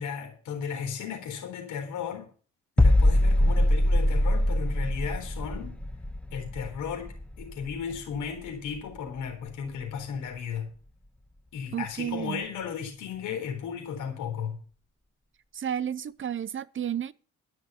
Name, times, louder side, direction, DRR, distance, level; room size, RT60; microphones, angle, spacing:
voice 1, 0.0-2.3 2.8-5.8 6.3-10.7 11.5-14.6, left 7 dB, 85° left, 4.0 m, -35 dB
sound 1, 2.8-8.5 8.7-9.0, left 1 dB, 5° left, 0.7 m, -24 dB
voice 2, 11.7-12.4 15.5-17.1, right 9 dB, 40° right, 0.7 m, -32 dB
12.5 x 6.3 x 8.3 m
cardioid pair, 90°, 30 cm